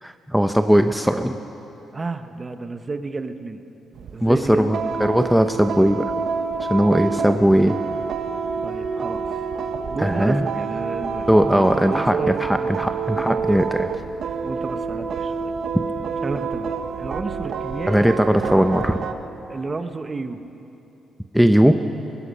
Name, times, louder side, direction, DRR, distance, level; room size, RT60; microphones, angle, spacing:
voice 1, 0.0-1.4 4.2-6.1 6.7-7.8 10.0-10.5 11.3-13.9 17.9-19.0 21.3-21.8, equal, ahead, 6 dB, 0.7 m, -18 dB
voice 2, 1.9-3.6 4.1-4.9 8.6-9.4 9.9-13.5 14.4-15.5 16.2-18.1 18.4-18.7 19.5-20.4, right 3 dB, 30° right, 8 dB, 1.1 m, -32 dB
sound 1, 3.9-19.1, right 5 dB, 65° right, 1.1 m, -28 dB
24.0 x 21.5 x 5.5 m, 2.9 s
cardioid pair, 110°, 0 cm